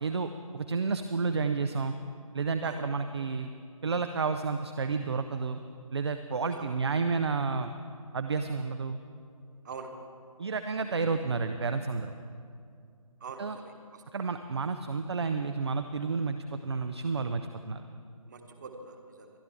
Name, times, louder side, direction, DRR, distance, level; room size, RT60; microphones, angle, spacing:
voice 1, 0.0-1.9 2.3-3.5 3.8-5.6 5.9-7.7 8.1-9.0 10.4-12.1 13.4-13.6 14.1-17.8, right 4 dB, 45° right, 8 dB, 0.6 m, -31 dB
voice 2, 9.6-10.0 13.2-14.0 18.3-19.3, right 4 dB, 30° right, 4 dB, 1.3 m, -44 dB
23.0 x 11.0 x 3.6 m, 2.3 s
figure-of-eight pair, 150°, 18 cm